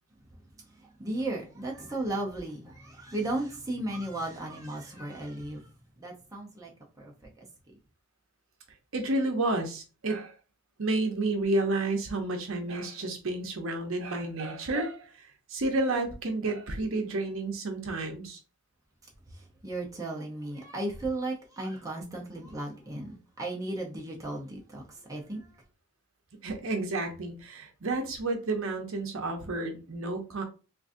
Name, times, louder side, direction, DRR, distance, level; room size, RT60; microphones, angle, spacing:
voice 1, 0.7-5.7 6.0-6.7 7.0-7.5 19.3-25.6, right 2 dB, 15° right, 0.6 m, -35 dB
voice 2, 8.9-10.3 10.8-18.4 26.4-30.4, right 2 dB, 65° right, 0.7 m, -31 dB
3.7 x 2.6 x 2.5 m
head